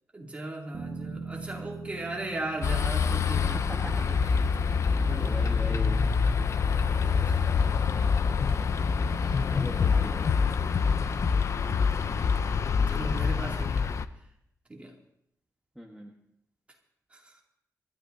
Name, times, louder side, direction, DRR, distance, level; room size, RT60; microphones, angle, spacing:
voice 1, 0.1-5.5 7.1-7.9 9.2-9.4 12.9-13.8 14.7-14.9 17.1-17.3, right 2 dB, 20° right, -1 dB, 2.6 m, -38 dB
Bass guitar, 0.7-5.1, right 4 dB, 85° right, 1.5 m, -42 dB
sound 1, 2.6-14.1, left 5 dB, 55° left, 0.6 m, -26 dB
voice 2, 3.5-4.2 5.2-6.1 9.5-10.4 15.7-16.1, equal, 5° right, -2 dB, 1.3 m, -40 dB
26.5 x 13.5 x 2.7 m, 0.75 s
wide cardioid pair, 155°, 6 cm